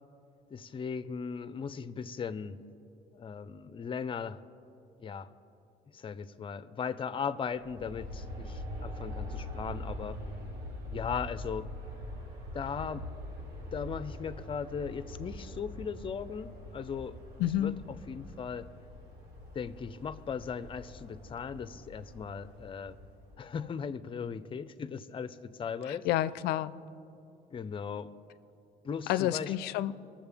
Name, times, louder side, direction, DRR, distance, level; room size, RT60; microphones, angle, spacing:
voice 1, 0.5-2.6 3.1-4.4 5.0-5.3 5.9-10.2 10.9-11.7 12.5-13.1 13.7-17.2 17.6-17.7 18.1-18.7 19.5-23.0 23.4-26.1 27.5-28.1 28.8-29.5, left 6 dB, 35° left, 14 dB, 0.5 m, -38 dB
Aircraft, 7.6-23.6, left 1 dB, 80° right, 1.7 m, -43 dB
voice 2, 17.4-17.8 25.9-26.7 29.1-29.9, left 13 dB, 85° left, 15 dB, 0.4 m, -29 dB
20.5 x 7.4 x 3.5 m, 2.8 s
cardioid pair, 100°, 16 cm